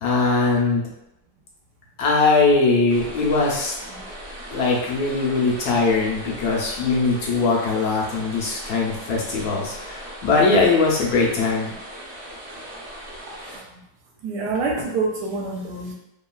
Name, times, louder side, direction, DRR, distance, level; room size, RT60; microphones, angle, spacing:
voice 1, 0.0-0.9 2.0-3.7 4.5-11.7, left 3 dB, 75° left, -3 dB, 1.0 m, -21 dB
sound 1, 2.9-13.6, right 1 dB, 60° right, 0.7 m, -38 dB
voice 2, 14.2-15.9, right 3 dB, 75° right, -1 dB, 1.1 m, -26 dB
3.0 x 2.2 x 2.2 m, 0.86 s
omnidirectional pair, 1.9 m